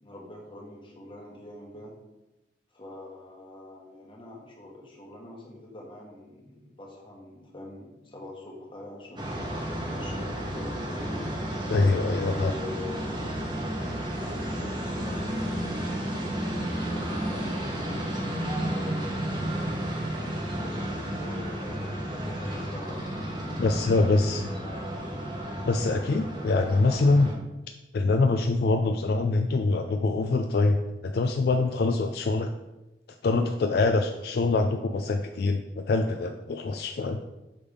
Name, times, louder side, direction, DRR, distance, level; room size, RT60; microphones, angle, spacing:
voice 1, 0.0-2.0 2.7-9.3 10.0-11.2 12.1-13.2 14.2-15.6 16.3-19.1 20.6-24.8, left 2 dB, 25° left, -2 dB, 1.3 m, -44 dB
sound 1, 9.2-27.3, right 1 dB, 25° right, 1.0 m, -32 dB
voice 2, 11.7-12.5 23.6-24.4 25.7-27.3 27.9-32.5 33.2-37.2, left 3 dB, 55° left, 6 dB, 0.3 m, -24 dB
6.5 x 3.5 x 5.1 m, 1.0 s
head